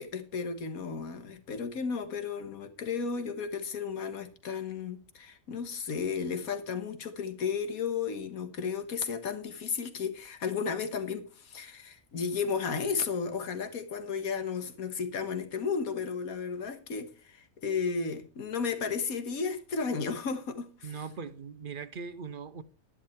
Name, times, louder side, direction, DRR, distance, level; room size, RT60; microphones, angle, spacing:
voice 1, 0.0-20.9, left 5 dB, 85° left, 1.8 m, -33 dB
voice 2, 20.8-22.6, right 5 dB, 50° right, 0.7 m, -40 dB
11.5 x 11.0 x 4.4 m
omnidirectional pair, 1.5 m